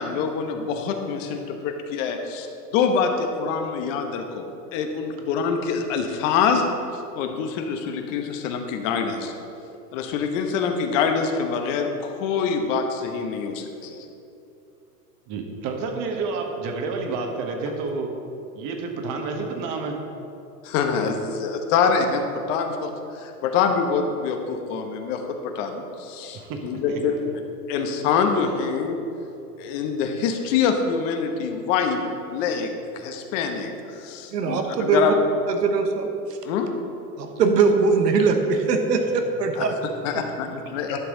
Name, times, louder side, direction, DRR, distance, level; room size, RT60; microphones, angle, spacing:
voice 1, 0.0-2.5 2.7-6.7 7.1-9.3 9.9-14.0 20.6-27.2 27.7-29.0 29.6-32.0 32.3-35.2 36.4-36.7 39.6-39.7 40.0-41.0, left 6 dB, 50° left, 5 dB, 1.0 m, -25 dB
voice 2, 15.3-18.2 18.6-20.0 26.3-27.2 28.5-28.7 29.5-29.7 39.0-41.0, right 4 dB, 45° right, 3 dB, 1.4 m, -31 dB
voice 3, 34.3-35.0 35.5-36.1 37.2-39.7, right 4 dB, 85° right, 5 dB, 1.1 m, -21 dB
11.0 x 6.1 x 3.8 m, 2.8 s
hypercardioid pair, 110°, 47 cm